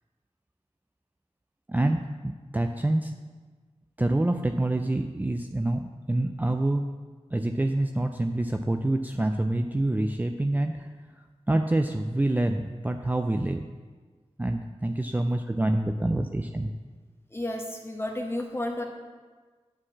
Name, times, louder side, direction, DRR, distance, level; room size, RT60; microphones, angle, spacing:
voice 1, 2.2-3.1 4.0-6.8 7.3-10.9 11.5-13.7 14.4-16.7, right 1 dB, 15° right, 5 dB, 0.4 m, -26 dB
voice 2, 17.3-18.8, left 1 dB, 20° left, 1 dB, 1.4 m, -32 dB
8.7 x 4.8 x 7.2 m, 1.4 s
wide cardioid pair, 75°, 11 cm